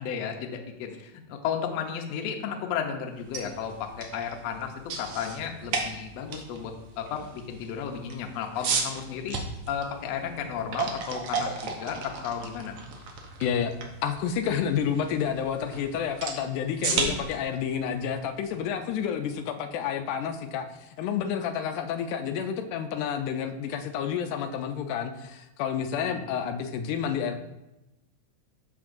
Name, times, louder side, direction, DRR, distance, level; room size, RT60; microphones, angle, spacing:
voice 1, 0.0-9.4 9.7-12.8 16.8-17.1 26.0-26.2, left 7 dB, 70° left, 3 dB, 1.7 m, -34 dB
sound 1, 3.1-19.1, right 4 dB, 65° right, 1.5 m, -35 dB
voice 2, 13.4-13.7 14.0-20.7 21.0-27.4, left 8 dB, 85° left, 6 dB, 2.1 m, -30 dB
13.0 x 4.5 x 2.6 m, 0.95 s
omnidirectional pair, 3.5 m